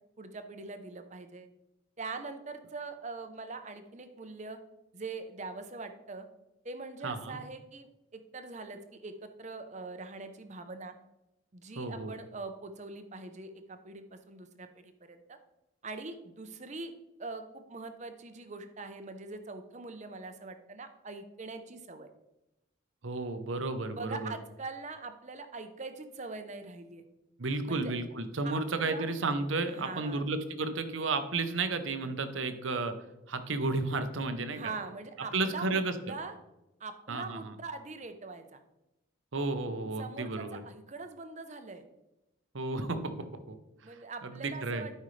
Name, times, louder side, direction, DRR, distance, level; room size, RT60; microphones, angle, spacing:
voice 1, 0.2-1.5 2.0-4.6 4.9-6.2 6.6-10.9 11.5-15.4 15.8-16.9 17.2-22.1 23.9-27.0 27.6-27.9 28.4-29.2 29.7-30.2 34.5-36.3 36.8-38.6 40.0-41.8 43.8-44.9, right 3 dB, 35° right, 8 dB, 0.7 m, -43 dB
voice 2, 7.0-7.4 11.8-12.1 23.0-24.3 27.4-32.9 33.3-34.7 35.3-36.1 37.1-37.5 39.3-40.6 42.5-43.6 43.9-44.9, right 3 dB, 70° right, 9 dB, 0.8 m, -33 dB
12.5 x 5.5 x 3.3 m, 0.93 s
head